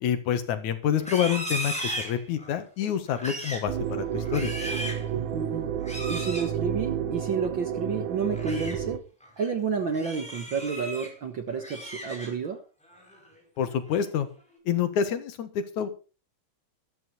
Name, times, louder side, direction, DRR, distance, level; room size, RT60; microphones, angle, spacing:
voice 1, 0.0-4.5 13.6-14.3 14.7-15.9, left 9 dB, 75° left, 10 dB, 2.8 m, -27 dB
Livestock farm animals working animals, 0.9-2.6 3.1-3.7 4.1-5.1 5.8-6.5 8.2-8.8 9.2-9.5 9.9-11.1 11.5-12.5 12.9-13.3 13.7-14.1, equal, ahead, 4.5 m, -36 dB
sound 1, 3.7-9.0, right 9 dB, 75° right, 2.5 m, -31 dB
voice 2, 5.1-5.7 6.1-9.0 9.4-12.6, right 6 dB, 55° right, 7 dB, 1.4 m, -30 dB
13.5 x 13.0 x 4.1 m, 0.34 s
omnidirectional pair, 3.5 m